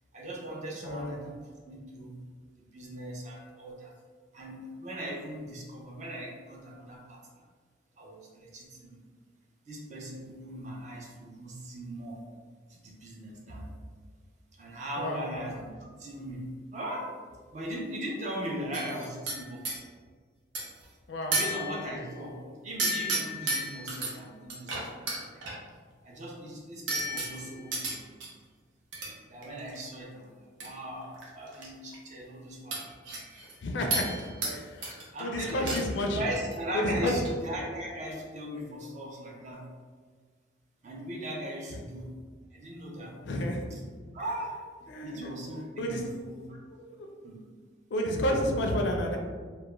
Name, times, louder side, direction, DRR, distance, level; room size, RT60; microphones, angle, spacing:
voice 1, 0.1-2.2 2.7-3.9 4.3-7.2 8.0-9.0 9.7-12.2 12.7-13.7 14.5-17.2 17.5-19.7 21.3-25.4 26.0-28.0 29.3-32.8 34.4-34.5 35.1-39.7 40.8-42.2 42.5-43.2 43.7-43.8 44.1-46.6 47.2-47.4, right 1 dB, 35° right, -2 dB, 0.4 m, -39 dB
voice 2, 0.8-1.3 15.0-15.3 21.1-21.4 33.6-34.1 34.5-34.6 35.2-36.2 36.7-37.1 43.2-43.6 44.9-45.3 45.8-46.0 46.8-47.1 47.9-49.2, left 1 dB, 70° left, 1 dB, 0.4 m, -30 dB
sound 1, 18.7-19.8 20.5-20.8 21.3-22.0 22.8-24.1 24.5-25.6 26.9-28.3 28.9-29.1 29.4-29.8 30.6-30.7 31.0-31.7 31.9-32.0 32.7-33.5 33.9-34.6 34.8-35.2 35.5-36.1 36.3-36.5 36.9-37.3, right 2 dB, 80° right, 0.6 m, -33 dB
2.2 x 2.1 x 3.0 m, 1.5 s
head